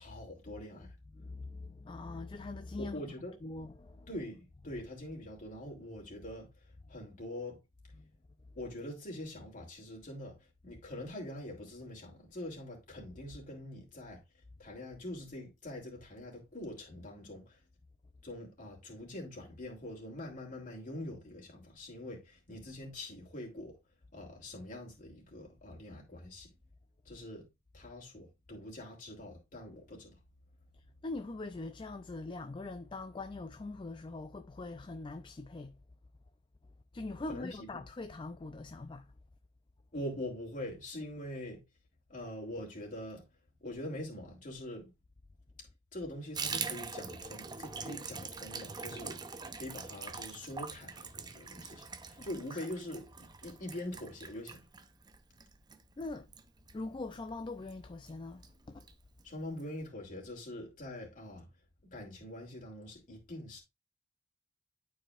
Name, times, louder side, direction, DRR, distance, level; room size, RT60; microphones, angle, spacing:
voice 1, 0.0-1.0 2.8-3.4 4.1-6.5 6.9-7.6 8.5-10.4 10.6-14.2 14.6-17.6 18.2-23.8 24.1-26.5 27.0-27.5 27.7-30.1 37.3-37.8 39.9-41.6 42.1-43.2 43.6-44.9 45.9-49.2 49.5-53.1 53.4-54.6 59.2-61.5 61.9-63.6, left 1 dB, 45° left, 3.0 m, -44 dB
voice 2, 1.1-3.1 3.4-4.2 4.6-4.8 7.9-8.0 31.0-35.8 36.9-39.0 52.2-52.6 56.0-56.3 56.7-58.9, left 2 dB, 25° left, 0.4 m, -42 dB
Water tap faucet / Bathtub (filling or washing), 46.3-57.3 57.6-57.8 58.1-58.2 58.4-58.9 59.2-59.3 59.6-59.7, right 5 dB, 20° right, 0.6 m, -43 dB
11.5 x 4.8 x 2.4 m
head